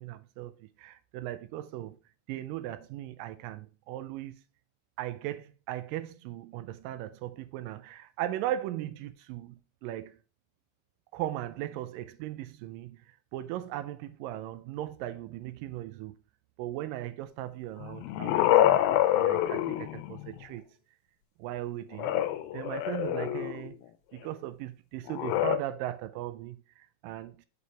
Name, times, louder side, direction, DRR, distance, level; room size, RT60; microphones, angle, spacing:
voice 1, 0.0-2.0 2.3-4.4 5.0-10.2 11.1-16.2 16.6-20.7 21.4-22.1 22.5-23.8 24.1-27.5, right 13 dB, 80° right, 2.1 m, -38 dB
sound 1, 17.8-20.4 21.9-23.7 25.1-25.6, left 13 dB, 85° left, 2.4 m, -26 dB
6.9 x 5.1 x 3.3 m
omnidirectional pair, 4.2 m